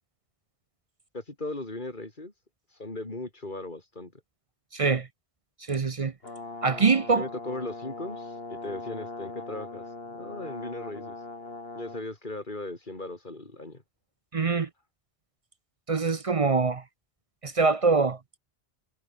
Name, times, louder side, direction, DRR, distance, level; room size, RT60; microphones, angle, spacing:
voice 1, 1.1-2.3 2.8-4.1 7.2-11.2 11.7-13.8, left 2 dB, 50° left, 4.1 m, -37 dB
voice 2, 4.7-5.1 5.7-6.1 6.6-7.3 14.3-14.7 15.9-16.8 17.4-18.2, right 4 dB, 40° right, 0.7 m, -24 dB
Brass instrument, 6.2-12.0, left 3 dB, 70° left, 3.3 m, -40 dB
omnidirectional pair, 1.1 m